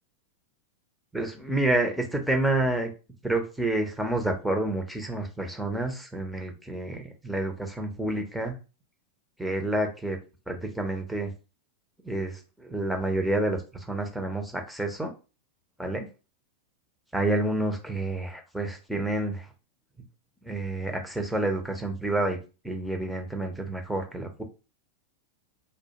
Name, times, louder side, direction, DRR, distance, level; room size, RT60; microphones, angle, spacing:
voice 1, 1.1-2.9 3.2-8.5 9.4-10.2 10.5-11.3 12.0-13.6 13.9-15.1 15.8-16.1 17.1-19.5 20.4-22.4 22.6-24.4, right 2 dB, ahead, 3 dB, 0.6 m, -29 dB
2.2 x 2.1 x 2.8 m, 0.31 s
figure-of-eight pair, 90°, 0 cm